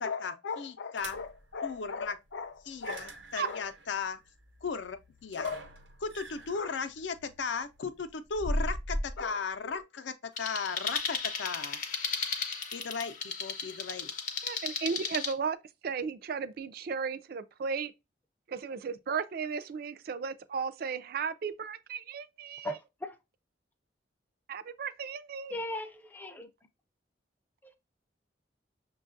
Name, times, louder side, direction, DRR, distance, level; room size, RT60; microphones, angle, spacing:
voice 1, 0.0-4.2 4.6-5.7 6.0-11.8 12.7-14.1, left 5 dB, 80° left, 0.5 m, -36 dB
sound 1, 1.0-1.5 2.7-9.3, equal, 90° right, 0.9 m, -39 dB
sound 2, 10.4-15.3, left 5 dB, 45° left, 0.8 m, -35 dB
voice 2, 14.4-15.6 15.8-17.9 18.5-22.8 24.5-25.5, right 6 dB, 55° right, 0.3 m, -35 dB
voice 3, 25.5-26.5, left 1 dB, 10° left, 0.4 m, -37 dB
6.2 x 2.3 x 2.5 m
head